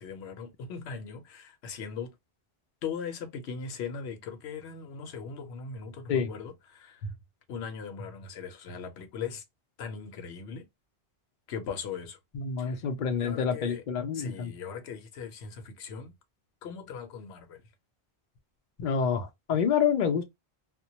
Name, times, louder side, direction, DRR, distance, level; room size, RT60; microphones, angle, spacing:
voice 1, 0.0-2.1 2.8-7.1 7.5-9.4 9.8-10.6 11.5-12.2 12.6-12.8 13.2-13.8 14.1-16.1 16.6-17.6, left 6 dB, 90° left, 0.9 m, -39 dB
voice 2, 12.3-14.5 18.8-20.2, left 7 dB, 55° left, 0.6 m, -27 dB
2.2 x 2.1 x 2.7 m
omnidirectional pair, 1.1 m